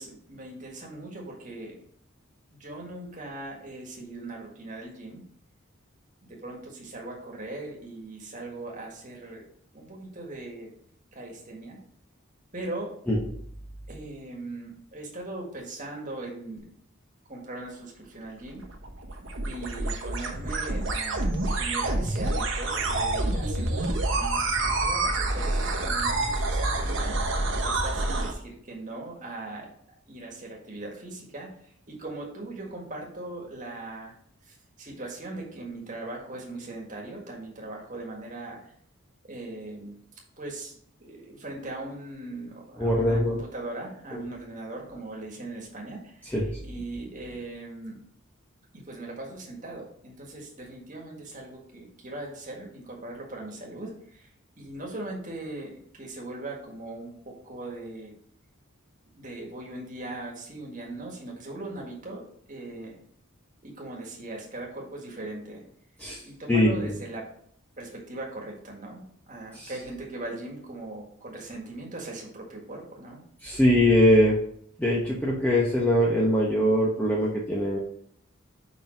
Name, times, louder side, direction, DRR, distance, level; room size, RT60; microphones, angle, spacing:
voice 1, 0.0-1.8 2.5-5.2 6.2-9.4 9.7-10.7 11.1-11.8 12.5-13.0 13.9-16.6 17.3-18.6 19.4-27.2 27.6-29.7 30.1-34.1 34.4-38.7 39.2-40.0 40.4-40.7 41.0-48.0 48.7-54.3 54.6-58.1 59.1-62.9 63.6-65.6 66.2-67.3 67.8-73.2, right 2 dB, 35° right, -1 dB, 1.8 m, -39 dB
sound 1, 18.5-28.3, right 2 dB, 60° right, 1.1 m, -27 dB
voice 2, 42.8-43.4 44.1-44.2 46.3-46.5 66.0-66.2 66.5-66.9 69.5-69.7 73.4-74.4 74.8-77.8, left 1 dB, 10° left, -5 dB, 1.0 m, -22 dB
5.4 x 5.2 x 4.5 m, 0.65 s
head